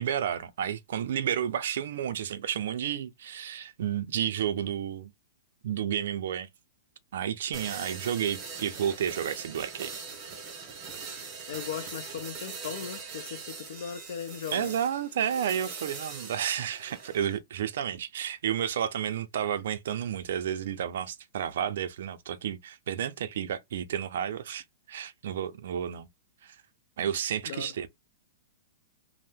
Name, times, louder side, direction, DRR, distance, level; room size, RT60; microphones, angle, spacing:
voice 1, 0.0-5.1 5.6-6.5 7.1-9.9 14.5-26.1 26.4-26.6 27.0-27.9, right 9 dB, 65° right, 0.4 m, -31 dB
sound 1, 7.5-17.4, right 5 dB, 25° right, 0.8 m, -42 dB
voice 2, 11.5-14.8 27.4-27.7, left 9 dB, 60° left, 0.5 m, -38 dB
2.7 x 2.0 x 3.4 m
hypercardioid pair, 160°, 0 cm